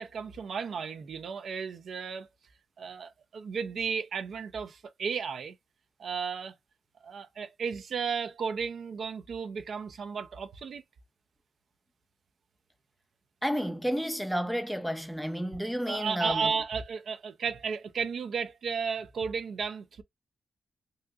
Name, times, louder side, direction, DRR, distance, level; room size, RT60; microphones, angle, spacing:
voice 1, 0.0-2.3 2.8-5.6 6.0-6.5 7.0-10.8 15.9-20.0, right 6 dB, 65° right, 0.5 m, -34 dB
voice 2, 13.4-16.5, equal, ahead, 0.5 m, -31 dB
3.2 x 2.7 x 2.3 m
wide cardioid pair, 125°, 0 cm